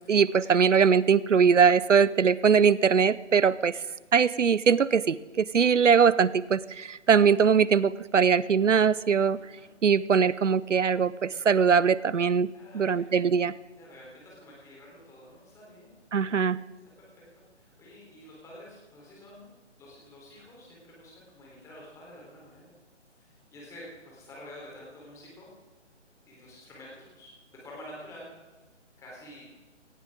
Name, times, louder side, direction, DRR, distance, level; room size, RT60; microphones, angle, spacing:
voice 1, 0.1-3.8 4.1-9.4 9.8-12.5 12.7-13.5 16.1-16.6, right 6 dB, 80° right, 19 dB, 0.7 m, -21 dB
voice 2, 9.3-9.7 12.5-13.0 13.8-16.0 17.0-17.4 17.8-19.5 19.8-22.7 23.2-25.5 26.3-28.3 29.0-29.5, left 1 dB, 10° left, -4 dB, 3.9 m, -49 dB
18.0 x 15.0 x 3.8 m, 1.2 s
figure-of-eight pair, 145°, 36 cm